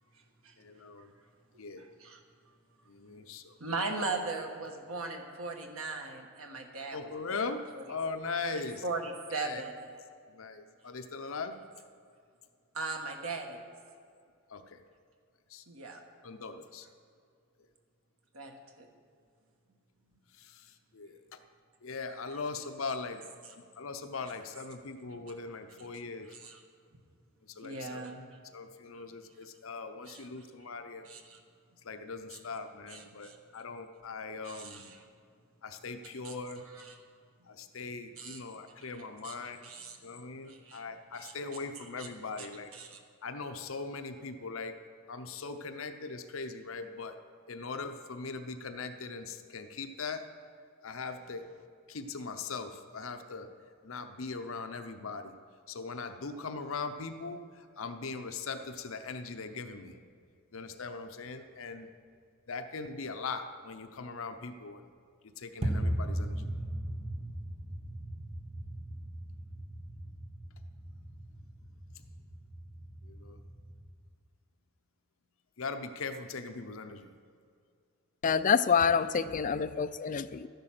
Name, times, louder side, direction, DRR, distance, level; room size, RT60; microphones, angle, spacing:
voice 1, 0.6-1.1 1.6-1.8 2.9-3.6 6.9-7.6 7.9-8.8 9.4-9.6 10.3-11.6 14.5-14.8 15.5-15.6 16.2-16.9 20.4-20.7 20.9-21.2 21.8-23.2 23.8-26.3 27.6-28.0 28.5-31.1 31.8-34.9 35.6-36.6 37.5-39.7 40.0-42.7 43.2-44.7 45.1-47.1 47.5-50.2 50.8-51.4 51.9-53.5 53.8-55.3 55.7-59.9 60.5-61.9 62.5-64.9 65.4-66.5 73.0-73.4 75.6-77.1, left 4 dB, 75° left, 7 dB, 0.7 m, -40 dB
voice 2, 1.5-2.2 3.6-7.0 7.3-7.4 8.5-9.8 12.7-13.6 15.7-16.0 18.3-18.9 26.3-26.6 27.6-28.2 30.1-30.3 31.0-31.4 32.3-32.4 32.9-33.3 34.4-35.0 36.2-36.3 36.7-37.0 38.2-38.4 38.8-38.9 39.2-39.4 39.6-40.0 40.5-40.8 41.1-41.3 41.8-42.1 42.4-42.5 42.7-43.0, right 3 dB, 90° right, 3 dB, 1.4 m, -39 dB
sound 1, 65.6-73.9, right 1 dB, 30° right, 1.2 m, -38 dB
voice 3, 78.2-80.5, left 6 dB, 40° left, 11 dB, 0.4 m, -27 dB
12.5 x 10.5 x 6.0 m, 2.3 s
head